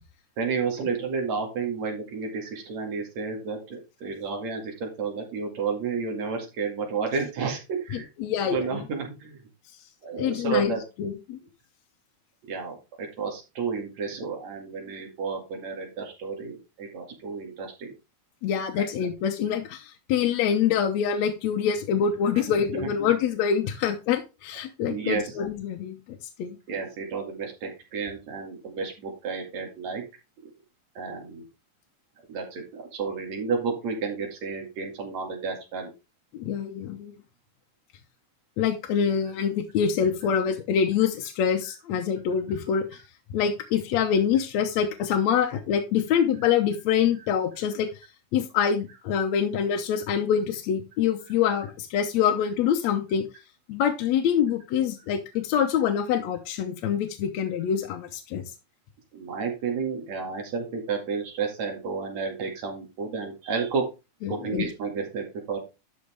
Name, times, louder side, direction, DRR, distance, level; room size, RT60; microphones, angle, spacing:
voice 1, 0.4-8.1 8.5-9.4 10.0-10.8 12.5-17.9 18.7-18.9 22.5-22.9 24.9-25.3 26.7-30.0 30.4-30.5 30.9-31.4 32.3-35.9 59.1-63.8 64.3-65.6, right 5 dB, 65° right, 1 dB, 3.4 m, -31 dB
voice 2, 7.9-8.8 10.2-11.4 18.4-26.0 26.4-26.6 36.3-37.1 38.6-43.0 43.3-47.9 48.3-53.2 53.7-58.4 64.2-64.7, left 8 dB, 70° left, 4 dB, 2.1 m, -25 dB
11.5 x 5.7 x 3.4 m, 0.27 s
omnidirectional pair, 3.5 m